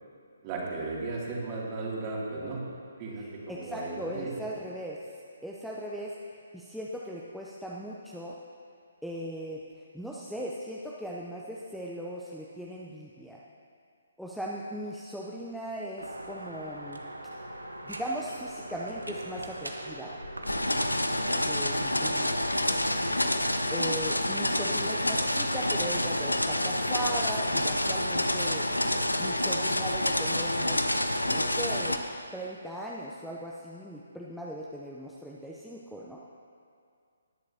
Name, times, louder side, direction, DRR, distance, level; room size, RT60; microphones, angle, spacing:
voice 1, 0.4-2.6 3.0-4.3, right 3 dB, 25° right, -4 dB, 2.7 m, -35 dB
voice 2, 3.5-5.0 5.4-8.4 9.0-13.4 14.2-17.0 17.8-20.1 21.4-22.3 23.7-28.6 29.2-32.0 32.3-36.2, right 1 dB, ahead, -5 dB, 0.7 m, -38 dB
sound 1, 16.0-21.4, right 1 dB, 85° right, 1.2 m, -41 dB
sound 2, 20.4-32.0, left 1 dB, 85° left, 0.8 m, -28 dB
19.5 x 10.5 x 2.9 m, 2.3 s
figure-of-eight pair, 140°, 0 cm